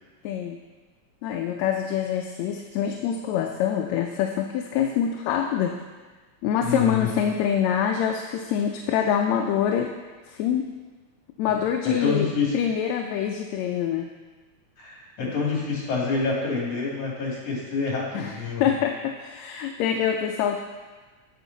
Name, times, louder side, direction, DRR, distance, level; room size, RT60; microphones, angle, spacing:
voice 1, 0.2-0.6 1.2-5.8 6.4-9.9 10.3-10.7 11.4-12.3 12.5-14.1 18.1-18.3 18.6-20.6, left 8 dB, 80° left, 3 dB, 1.8 m, -25 dB
voice 2, 6.6-7.1 11.5-12.5 14.8-18.7, left 4 dB, 60° left, -4 dB, 3.5 m, -27 dB
15.5 x 5.9 x 4.0 m, 1.3 s
omnidirectional pair, 3.3 m